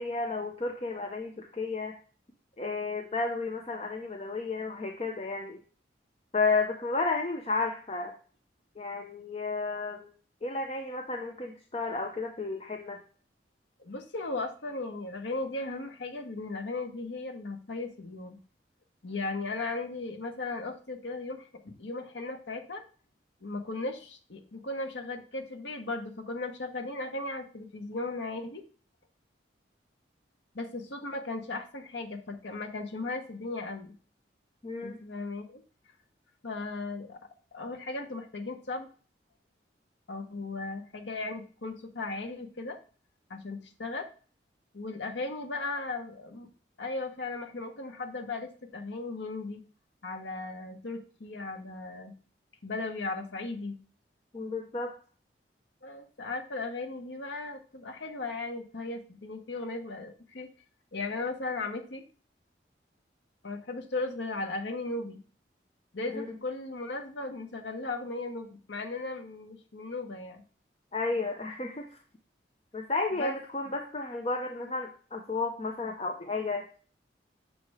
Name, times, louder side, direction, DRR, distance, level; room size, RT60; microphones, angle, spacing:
voice 1, 0.0-1.9 2.6-5.6 6.3-8.1 8.8-10.1 10.4-13.0 34.6-35.0 54.3-54.9 66.1-66.2 70.9-71.9 72.7-76.7, left 3 dB, 35° left, 2 dB, 0.6 m, -32 dB
voice 2, 13.8-18.4 19.0-22.8 23.4-28.6 30.5-33.9 34.8-35.6 36.4-37.2 37.5-38.9 40.1-42.8 43.3-44.1 44.7-46.5 46.8-49.6 50.0-52.1 52.6-53.8 55.8-60.5 60.9-62.0 63.4-65.2 65.9-70.4 73.1-73.3, left 3 dB, 80° left, 6 dB, 1.0 m, -36 dB
6.7 x 3.2 x 4.7 m, 0.40 s
head